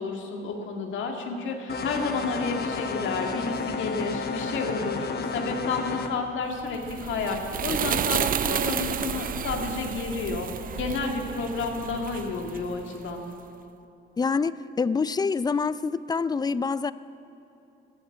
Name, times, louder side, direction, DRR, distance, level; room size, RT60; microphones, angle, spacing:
voice 1, 0.0-10.5 10.8-13.2, left 4 dB, 75° left, 3 dB, 2.0 m, -31 dB
sound 1, 1.7-6.1, left 4 dB, 55° left, 1.1 m, -32 dB
sound 2, 6.6-13.2, right 8 dB, 45° right, 0.5 m, -31 dB
voice 2, 14.2-16.9, left 5 dB, 20° left, 17 dB, 0.4 m, -26 dB
14.5 x 9.2 x 8.5 m, 3.0 s
cardioid pair, 90°, 20 cm